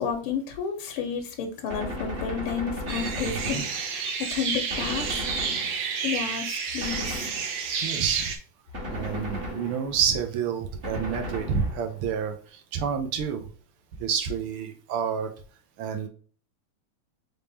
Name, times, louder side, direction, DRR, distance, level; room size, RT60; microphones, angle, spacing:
voice 1, 0.0-4.0 4.3-5.1 6.0-7.2, left 6 dB, 90° left, 5 dB, 1.7 m, -31 dB
Gunshot gunfire, 1.7-4.2 4.7-6.1 6.8-7.8 8.7-10.1 10.8-12.1, left 1 dB, 35° right, 1.2 m, -36 dB
sound 1, 2.9-8.4, right 5 dB, 60° right, 1.1 m, -30 dB
voice 2, 3.2-3.6 7.8-8.3 8.9-13.5 14.0-15.3 15.8-16.1, right 7 dB, 90° right, 5 dB, 1.7 m, -29 dB
4.6 x 3.5 x 2.6 m, 0.42 s
omnidirectional pair, 2.3 m